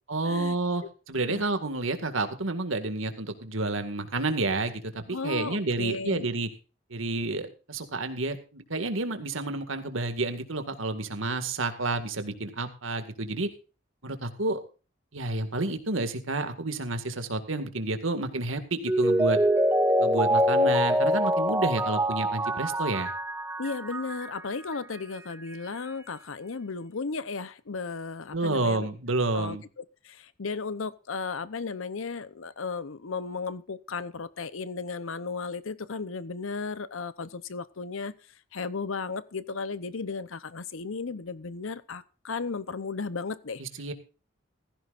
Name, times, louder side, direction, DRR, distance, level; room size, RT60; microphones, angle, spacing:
voice 1, 0.1-6.5 6.9-13.5 14.0-14.6 15.1-19.4 20.0-23.1 28.3-29.6 43.6-43.9, right 2 dB, 85° right, 8 dB, 2.0 m, -30 dB
voice 2, 5.1-6.3 23.6-28.9 29.3-38.1 38.5-43.6, left 4 dB, 85° left, 16 dB, 0.8 m, -35 dB
Mallet percussion, 18.9-24.4 24.7-24.8, equal, 10° right, 0.5 m, -25 dB
16.0 x 15.0 x 2.5 m, 0.35 s
head